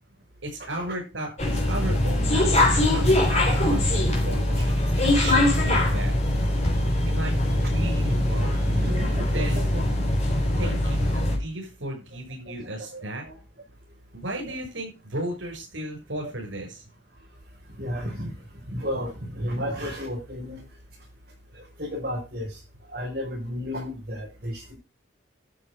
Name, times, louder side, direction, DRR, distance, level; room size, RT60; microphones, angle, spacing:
voice 1, 0.4-4.6 5.0-6.2 7.1-8.7 9.3-9.7 10.6-13.2 14.1-16.8, right 1 dB, 85° right, 1 dB, 6.5 m, -35 dB
sound 1, 1.4-11.4, left 1 dB, 35° left, 4.0 m, -22 dB
voice 2, 8.6-9.6 12.1-12.2 12.5-12.6 12.9-13.4 14.4-14.6 17.8-18.4 18.7-20.6 21.5-22.6 22.9-24.7, equal, 50° right, -4 dB, 5.7 m, -33 dB
12.5 x 7.3 x 4.9 m, 0.29 s
head